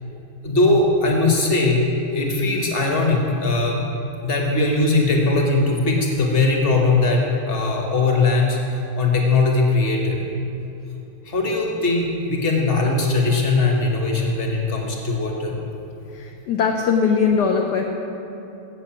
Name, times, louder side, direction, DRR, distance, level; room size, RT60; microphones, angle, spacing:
voice 1, 0.4-1.8 2.1-3.8 4.2-8.6 9.0-10.2 11.2-15.6, left 3 dB, 35° left, 0 dB, 1.2 m, -20 dB
voice 2, 16.1-17.8, left 6 dB, 70° left, 2 dB, 1.0 m, -20 dB
7.8 x 7.8 x 7.3 m, 2.8 s
omnidirectional pair, 2.3 m